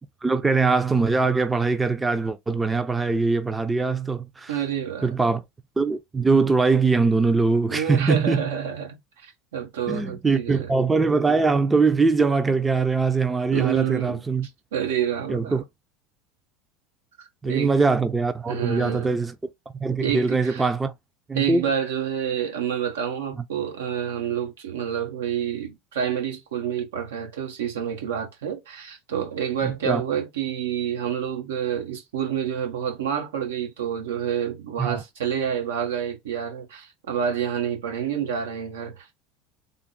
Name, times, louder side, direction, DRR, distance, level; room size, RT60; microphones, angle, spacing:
voice 1, 0.2-4.5 5.0-5.4 5.8-8.4 9.9-14.5 15.3-15.6 17.4-19.3 19.8-20.9 21.3-21.7 29.6-30.0 34.8-35.0, right 4 dB, 15° right, 0.5 m, -22 dB
voice 2, 4.5-5.2 7.7-10.7 13.5-14.2 14.7-15.6 17.5-17.7 18.5-19.2 20.0-20.7 21.3-39.2, right 8 dB, 85° right, 1.1 m, -28 dB
3.7 x 2.1 x 3.8 m
hypercardioid pair, 95°, 0 cm